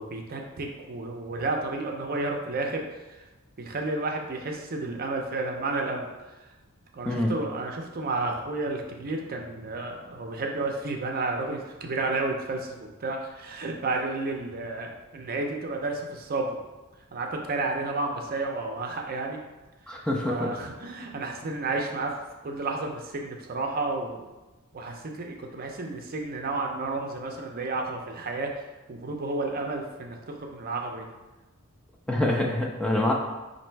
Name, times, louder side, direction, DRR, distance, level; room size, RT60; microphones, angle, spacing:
voice 1, 0.0-3.2 3.6-6.1 6.9-16.5 17.1-19.4 19.9-22.1 22.4-24.2 24.7-28.5 28.9-31.0, right 3 dB, 45° right, 2 dB, 0.5 m, -31 dB
voice 2, 19.9-20.5 32.1-33.1, left 1 dB, 5° left, -2 dB, 0.4 m, -25 dB
4.2 x 2.6 x 4.4 m, 1.1 s
head